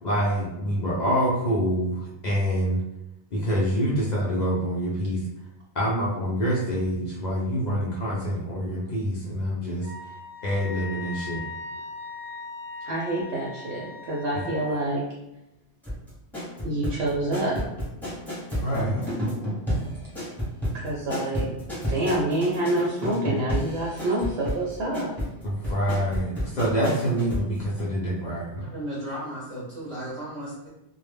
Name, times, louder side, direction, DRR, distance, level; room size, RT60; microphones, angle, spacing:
voice 1, 0.0-2.8 3.3-5.2 5.7-9.9 10.4-11.4 14.3-14.4 18.6-19.0 25.4-28.7, equal, 55° left, -5 dB, 0.5 m, -26 dB
Wind instrument woodwind instrument, 9.8-14.8, left 3 dB, 80° left, 0.9 m, -39 dB
voice 2, 12.9-15.0 16.6-17.7 20.7-21.5 21.9-25.2, right 1 dB, 80° right, -4 dB, 0.9 m, -27 dB
sound 1, 15.8-27.5 27.8-27.9, equal, ahead, 0.8 m, -31 dB
voice 3, 28.6-30.7, equal, 30° right, -9 dB, 0.7 m, -35 dB
2.0 x 2.0 x 3.3 m, 0.89 s
omnidirectional pair, 1.1 m